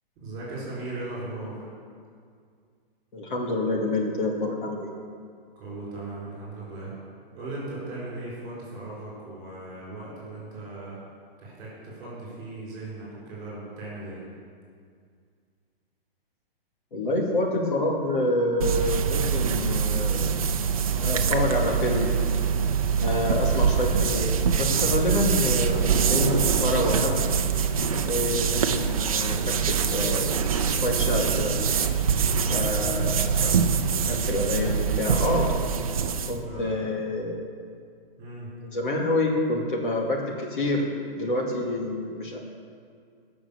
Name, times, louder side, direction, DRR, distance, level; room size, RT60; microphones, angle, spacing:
voice 1, 0.2-1.7 5.5-6.9 7.3-11.0 11.4-14.2 23.1-23.2 32.4-32.8 36.3-36.9 38.2-38.5, right 2 dB, 15° right, -7 dB, 4.2 m, -38 dB
voice 2, 3.1-4.9 16.9-20.4 21.0-22.1 23.0-24.3 24.6-27.2 28.0-30.3 30.7-31.6 32.5-33.6 34.1-35.5 36.3-37.4 38.6-40.9 41.1-42.4, left 1 dB, 55° left, -1 dB, 2.4 m, -27 dB
sound 1, 18.6-36.4, right 6 dB, 35° right, 0.7 m, -24 dB
17.5 x 6.2 x 7.1 m, 2.2 s
hypercardioid pair, 180°, 29 cm